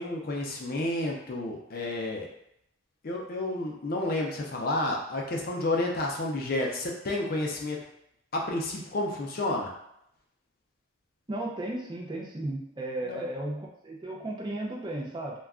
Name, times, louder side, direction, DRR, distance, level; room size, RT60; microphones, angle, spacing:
voice 1, 0.0-2.3 3.0-7.8 8.3-9.7 13.0-13.2, left 2 dB, 45° left, -1 dB, 0.4 m, -30 dB
voice 2, 11.3-15.3, right 1 dB, 20° right, -2 dB, 0.4 m, -34 dB
2.3 x 2.2 x 3.6 m, 0.77 s
head